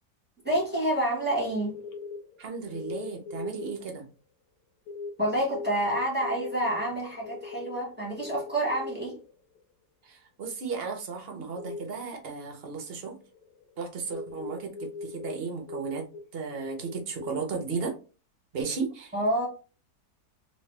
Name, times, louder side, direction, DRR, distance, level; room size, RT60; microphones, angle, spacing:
voice 1, 0.4-1.8 5.2-9.1 19.1-19.5, right 1 dB, 5° right, -4 dB, 1.2 m, -28 dB
sound 1, 1.7-3.8 4.9-9.6 11.6-11.8 12.8-15.4 15.7-16.2 16.5-17.3, left 4 dB, 85° left, 1.4 m, -40 dB
voice 2, 2.4-4.0 10.1-13.1 13.8-16.1 16.3-17.9 18.5-19.1, right 5 dB, 50° right, 3 dB, 0.8 m, -34 dB
3.2 x 3.1 x 3.2 m, 0.35 s
omnidirectional pair, 1.8 m